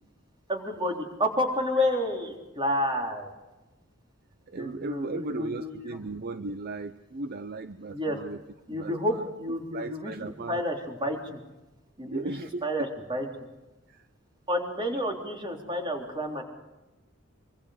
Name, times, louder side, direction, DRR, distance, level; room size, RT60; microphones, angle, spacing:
voice 1, 0.5-3.3 4.6-5.7 7.9-8.2 8.7-11.4 12.0-13.3 14.5-16.4, left 1 dB, 25° right, 1 dB, 3.5 m, -30 dB
voice 2, 4.5-8.4 8.7-9.3 9.7-10.6 12.0-12.9 13.9-14.0, right 3 dB, 50° right, 11 dB, 0.6 m, -36 dB
25.0 x 24.0 x 5.0 m, 1.1 s
head